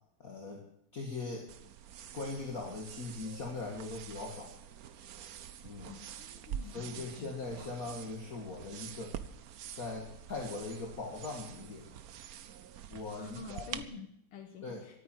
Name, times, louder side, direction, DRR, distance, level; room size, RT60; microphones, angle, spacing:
voice 1, 0.2-0.6 0.9-1.5 2.1-4.5 5.6-5.9 6.7-9.1 9.8-11.9 12.9-13.8 14.6-14.8, left 3 dB, 40° left, 0 dB, 2.3 m, -40 dB
sound 1, 1.5-13.8, right 9 dB, 65° right, 0.9 m, -46 dB
voice 2, 5.9-7.6 13.2-15.0, left 6 dB, 80° left, 5 dB, 2.2 m, -49 dB
13.5 x 9.2 x 9.2 m, 0.72 s
omnidirectional pair, 2.4 m